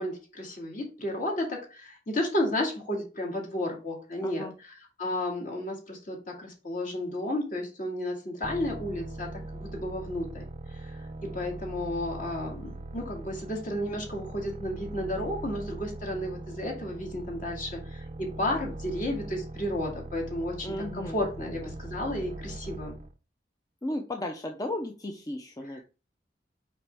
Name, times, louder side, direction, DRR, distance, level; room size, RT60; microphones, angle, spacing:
voice 1, 0.0-10.4 10.7-23.0, left 1 dB, 50° left, 1 dB, 2.2 m, -33 dB
voice 2, 4.2-4.5 20.6-21.8 23.8-25.8, left 1 dB, 20° left, 4 dB, 0.6 m, -35 dB
sound 1, 8.4-23.1, right 2 dB, 40° right, 0.5 m, -41 dB
5.7 x 5.1 x 3.5 m, 0.33 s
head